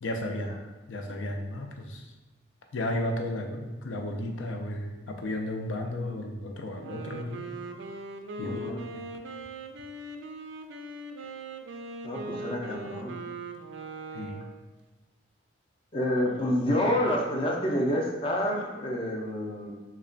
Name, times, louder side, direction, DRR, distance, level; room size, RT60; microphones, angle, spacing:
voice 1, 0.0-0.6 0.9-2.1 2.7-7.5 8.4-9.0 12.6-12.7 14.1-14.4, left 1 dB, 85° left, 3 dB, 0.5 m, -34 dB
Wind instrument woodwind instrument, 6.7-14.6, right 2 dB, 75° right, 0.3 m, -40 dB
voice 2, 8.4-8.8 12.0-13.2 15.9-19.7, equal, 25° left, 0 dB, 0.4 m, -28 dB
3.2 x 2.2 x 3.8 m, 1.2 s
head